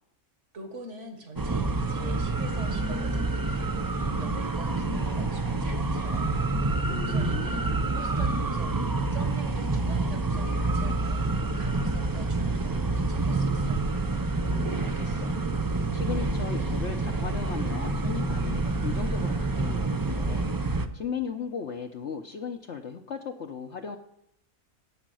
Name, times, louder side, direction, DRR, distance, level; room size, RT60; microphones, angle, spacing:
voice 1, 0.5-6.4 6.9-14.0, right 2 dB, 55° right, 5 dB, 2.1 m, -44 dB
sound 1, 1.4-20.9, right 3 dB, 30° right, 0.4 m, -28 dB
voice 2, 6.8-7.9 14.5-15.4 15.9-20.5 20.7-24.0, left 6 dB, 60° left, 3 dB, 1.1 m, -37 dB
15.0 x 5.1 x 9.0 m, 0.78 s
omnidirectional pair, 1.5 m